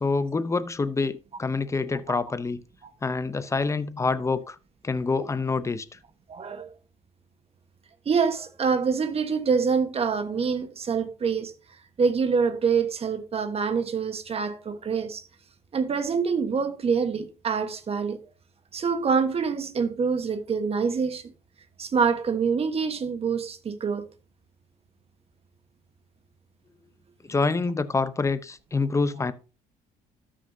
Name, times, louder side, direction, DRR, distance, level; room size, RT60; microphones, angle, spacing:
voice 1, 0.0-2.6 3.0-4.6 4.8-6.0 27.2-29.3, left 4 dB, 15° left, 0.7 m, -26 dB
voice 2, 6.3-6.7 8.0-11.5 12.0-15.2 15.7-18.2 18.7-21.3 21.8-24.1, right 5 dB, 35° right, 1.3 m, -26 dB
13.0 x 6.2 x 2.7 m
cardioid pair, 110°, 17 cm